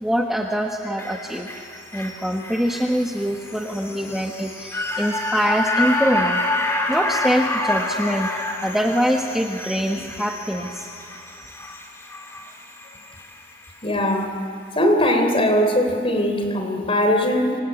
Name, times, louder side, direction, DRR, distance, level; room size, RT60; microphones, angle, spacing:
voice 1, 0.0-1.5 1.9-6.4 6.9-8.3 8.6-10.9, equal, ahead, 1 dB, 1.2 m, -24 dB
sound 1, 1.0-13.3 13.7-13.8, left 2 dB, 15° left, 2.7 m, -28 dB
voice 2, 13.8-14.4 14.8-17.6, left 1 dB, 30° left, 5 dB, 3.5 m, -20 dB
26.5 x 24.5 x 8.8 m, 2.5 s
head